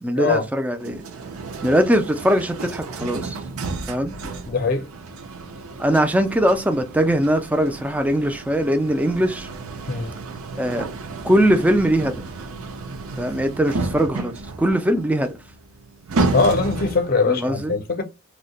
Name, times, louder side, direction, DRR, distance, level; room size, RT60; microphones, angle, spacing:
voice 1, 0.0-1.0 1.6-3.4 3.9-4.1 5.8-9.5 10.6-10.8 11.2-12.1 13.2-15.3 17.3-17.8, equal, 5° right, 0.3 m, -21 dB
sound 1, 0.8-17.2, right 3 dB, 80° right, 0.6 m, -32 dB
voice 2, 4.2-4.9 9.9-10.1 16.3-18.0, left 4 dB, 45° left, 0.5 m, -21 dB
2.7 x 2.1 x 3.9 m
head